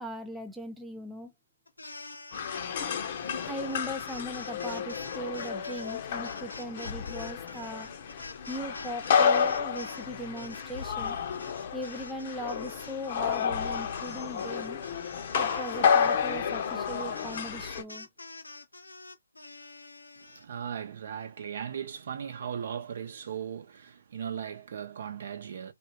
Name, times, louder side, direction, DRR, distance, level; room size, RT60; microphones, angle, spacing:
voice 1, 0.0-1.3 3.4-7.9 8.5-11.2 11.7-14.8 15.3-18.1, right 1 dB, 5° right, 0.3 m, -39 dB
sound 1, 1.7-10.1 10.4-20.4, left 3 dB, 85° left, 0.8 m, -46 dB
sound 2, 2.3-17.8, left 7 dB, 40° left, 0.7 m, -31 dB
voice 2, 20.2-25.7, right 8 dB, 50° right, 0.7 m, -38 dB
3.3 x 2.3 x 2.9 m
figure-of-eight pair, 140°, 0 cm